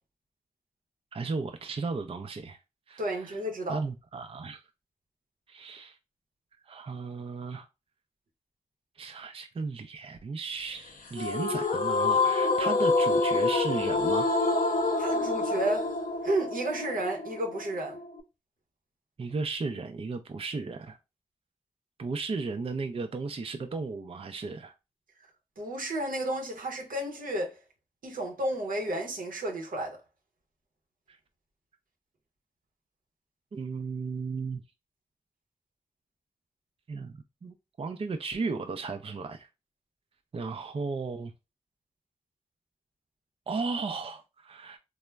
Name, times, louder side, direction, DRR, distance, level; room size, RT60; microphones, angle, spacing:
voice 1, 1.1-2.6 2.9-3.4 3.7-4.6 5.5-6.0 6.6-7.7 9.0-14.3 19.2-21.0 22.0-24.7 33.5-34.6 36.9-39.5 40.3-41.3 43.5-44.8, right 4 dB, 45° right, 0.3 m, -35 dB
voice 2, 3.0-3.8 15.0-15.9 16.2-18.0 25.6-27.6 28.0-30.0, right 1 dB, 90° right, 0.7 m, -32 dB
sound 1, 11.2-18.2, left 3 dB, 80° left, 0.5 m, -27 dB
3.2 x 2.0 x 2.2 m
cardioid pair, 50°, 14 cm